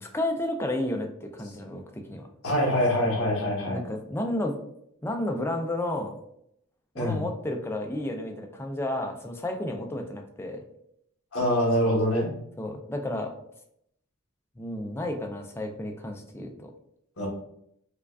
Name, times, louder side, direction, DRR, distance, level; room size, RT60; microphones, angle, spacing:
voice 1, 0.0-2.3 3.7-4.5 5.0-6.2 7.0-10.6 12.6-13.3 14.6-16.7, left 1 dB, 10° left, 4 dB, 0.4 m, -32 dB
voice 2, 2.4-3.8 6.9-7.2 11.3-12.3 17.2-17.3, equal, 70° left, -4 dB, 1.1 m, -24 dB
4.7 x 2.4 x 2.3 m, 0.74 s
head